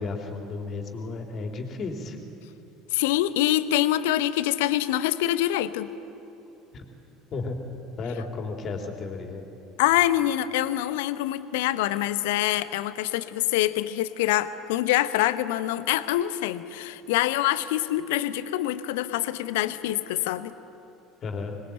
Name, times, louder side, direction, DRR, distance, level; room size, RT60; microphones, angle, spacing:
voice 1, 0.0-2.2 6.7-6.8 7.3-7.6 8.0-9.4 21.2-21.5, left 3 dB, 40° left, 3 dB, 3.7 m, -33 dB
voice 2, 2.9-5.9 9.8-20.5, left 14 dB, 65° left, 14 dB, 1.0 m, -25 dB
25.5 x 21.0 x 8.9 m, 2.9 s
figure-of-eight pair, 65°, 0 cm